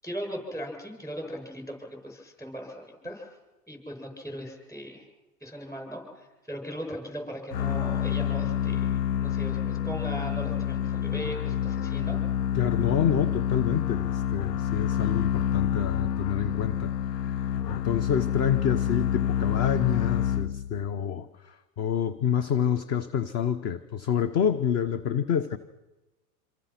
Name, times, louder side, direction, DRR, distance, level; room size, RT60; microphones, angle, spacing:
voice 1, 0.0-3.3 3.7-5.1 5.4-12.2, equal, 5° left, 2 dB, 7.5 m, -38 dB
sound 1, 7.5-20.9, left 9 dB, 85° left, 0.9 m, -28 dB
voice 2, 12.5-25.6, left 8 dB, 30° left, 13 dB, 1.0 m, -28 dB
27.0 x 26.0 x 6.0 m, 1.1 s
hypercardioid pair, 125°, 48 cm